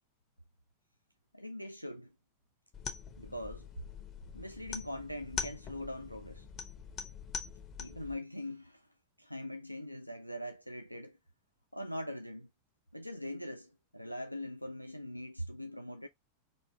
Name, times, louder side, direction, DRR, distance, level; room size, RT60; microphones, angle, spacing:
voice 1, 1.3-2.1 3.2-3.7 4.3-6.5 7.8-8.9 9.2-11.2 11.7-12.5 12.9-16.1, left 1 dB, 90° left, 0.3 m, -42 dB
sound 1, 2.7-8.1, left 6 dB, 35° left, 0.8 m, -43 dB
4.0 x 2.7 x 3.3 m
figure-of-eight pair, 90°, 0 cm